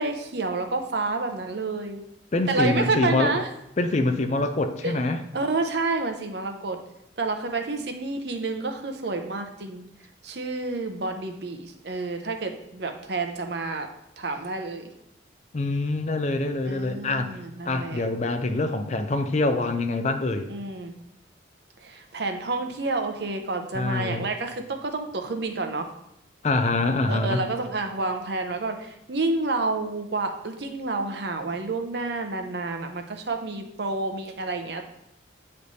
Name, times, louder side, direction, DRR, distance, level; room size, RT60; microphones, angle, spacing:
voice 1, 0.0-2.0 2.5-3.5 4.8-5.0 5.3-6.8 7.2-9.8 10.2-13.9 14.2-14.9 16.6-18.1 20.5-20.9 21.8-25.9 27.1-34.8, right 3 dB, 60° right, 6 dB, 0.7 m, -29 dB
voice 2, 2.3-3.4 3.8-5.2 15.5-17.3 17.6-20.5 23.7-24.2 26.4-27.4, left 2 dB, 35° left, 8 dB, 0.4 m, -25 dB
8.3 x 3.3 x 4.1 m, 0.81 s
head